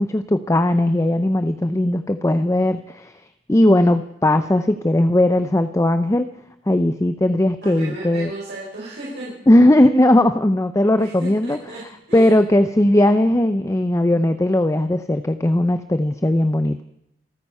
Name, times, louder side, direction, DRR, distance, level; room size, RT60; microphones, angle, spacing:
voice 1, 0.0-3.1 3.5-6.3 6.7-8.3 9.5-11.6 12.1-16.8, left 1 dB, 15° left, 10 dB, 0.5 m, -18 dB
voice 2, 7.6-9.4 11.0-11.8 12.1-12.3, right 1 dB, 80° right, -7 dB, 6.4 m, -34 dB
27.0 x 9.3 x 5.5 m, 0.80 s
head